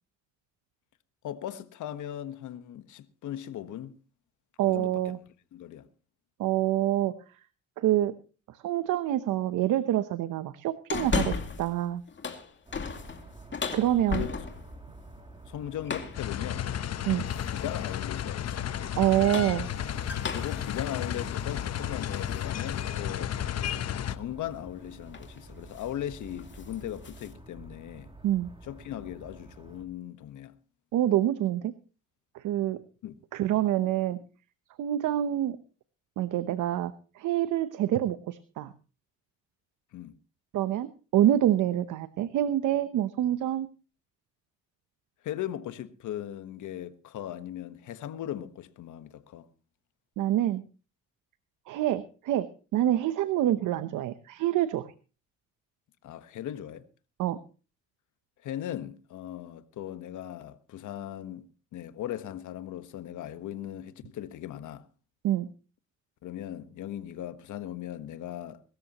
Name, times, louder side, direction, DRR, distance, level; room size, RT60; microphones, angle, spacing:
voice 1, 1.2-4.0 4.7-5.0 5.5-5.9 14.1-14.3 15.5-16.7 17.1-18.7 20.3-23.3 24.0-28.1 28.6-30.6 33.0-33.2 39.9-40.1 45.2-49.5 56.0-56.8 58.4-61.5 61.7-64.9 66.2-68.6, left 11 dB, 80° left, 1.3 m, -38 dB
voice 2, 4.6-5.2 6.4-7.1 7.8-8.1 8.5-12.0 13.7-14.2 17.1-17.2 19.0-19.7 28.2-28.5 30.9-31.7 32.3-32.8 33.3-34.2 34.8-35.6 36.2-38.7 40.5-43.7 50.2-50.6 51.7-54.9 57.2-57.4 65.2-65.5, right 12 dB, 80° right, 0.9 m, -26 dB
sound 1, 10.9-11.7 12.1-14.8 15.8-16.3 17.3-17.7 19.0-22.5 22.9-23.0 24.6-24.8 25.1-25.4 25.7-25.9 26.3-27.3, left 5 dB, 40° left, 2.4 m, -35 dB
sound 2, 12.6-29.8, right 2 dB, 15° right, 2.7 m, -49 dB
sound 3, 16.1-24.1, left 10 dB, 55° left, 1.0 m, -33 dB
22.5 x 13.5 x 3.0 m
cardioid pair, 90°, 30 cm